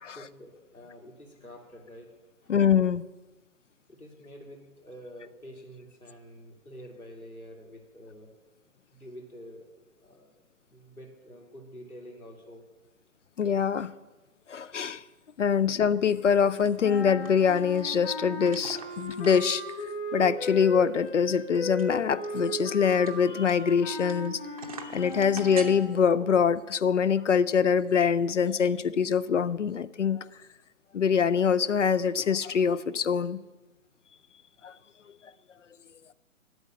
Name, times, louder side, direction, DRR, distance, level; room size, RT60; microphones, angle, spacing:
voice 1, 0.1-2.1 2.4-2.5 3.9-8.3 8.9-10.4 10.7-12.6, equal, 85° left, 1 dB, 3.0 m, -48 dB
voice 2, 2.5-3.0 13.4-13.9 14.5-15.0 15.4-19.6 20.1-24.4 24.8-30.3 30.9-33.4 34.6-34.7, left 7 dB, 60° left, 17 dB, 0.5 m, -24 dB
sound 1, 16.5-16.7 17.0-17.9 18.4-19.8 20.2-20.3 20.5-20.6 21.1-24.3 24.6-25.7, right 5 dB, 25° right, 0.7 m, -44 dB
sound 2, 16.8-26.0, left 1 dB, 35° left, 1.8 m, -37 dB
9.7 x 8.0 x 7.4 m, 1.1 s
figure-of-eight pair, 140°, 42 cm